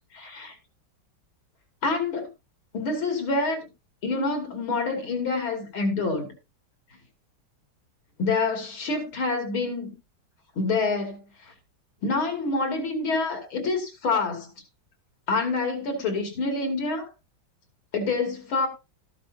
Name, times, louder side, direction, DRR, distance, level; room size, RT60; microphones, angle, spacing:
voice 1, 0.1-0.6 1.8-2.3 2.7-3.7 4.0-6.3 8.2-9.9 10.6-11.2 12.0-14.5 15.3-17.1 17.9-18.7, left 3 dB, 90° left, 3.6 m, -27 dB
14.0 x 11.0 x 2.8 m
omnidirectional pair, 2.2 m